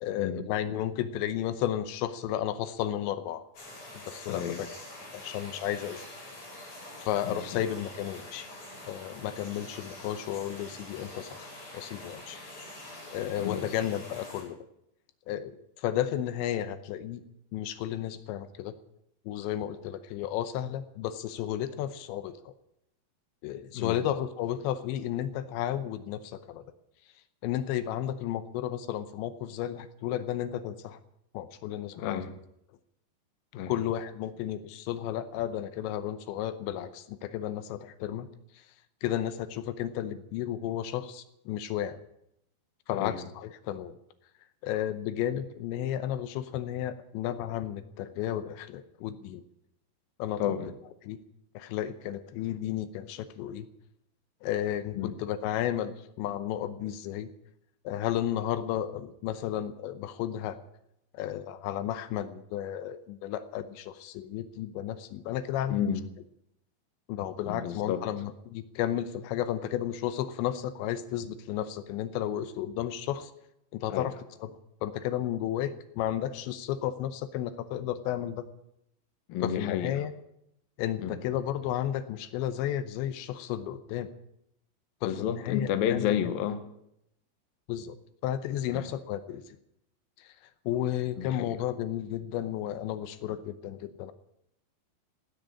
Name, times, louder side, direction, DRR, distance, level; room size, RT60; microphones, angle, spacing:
voice 1, 0.0-3.5 4.1-4.7 5.1-6.1 7.0-8.5 8.9-12.4 13.1-14.6 15.3-17.2 17.5-18.8 19.3-22.5 23.4-26.6 27.4-31.0 31.3-32.2 33.7-38.3 38.5-38.7 39.0-42.0 42.9-44.0 44.6-49.4 50.2-50.4 51.0-51.2 51.5-53.7 54.4-57.3 57.8-60.6 61.1-65.8 67.1-73.3 73.7-74.1 74.8-78.5 79.4-80.1 80.8-84.1 85.0-86.1 87.7-88.0 88.2-89.6 90.2-90.3 90.7-94.1, left 11 dB, 85° left, 12 dB, 3.1 m, -33 dB
sound 1, 3.5-14.4, left 1 dB, 40° left, 7.8 m, -45 dB
voice 2, 4.3-4.7 7.2-7.6 13.4-13.9 23.7-24.0 31.9-32.4 33.5-33.8 42.9-43.3 50.4-50.7 55.0-55.1 65.7-66.0 67.5-68.0 73.9-74.1 79.3-80.1 81.0-81.2 85.0-86.6 88.7-88.9 91.2-91.6, left 9 dB, 65° left, 10 dB, 2.5 m, -31 dB
16.5 x 10.0 x 8.5 m, 0.78 s
omnidirectional pair, 5.2 m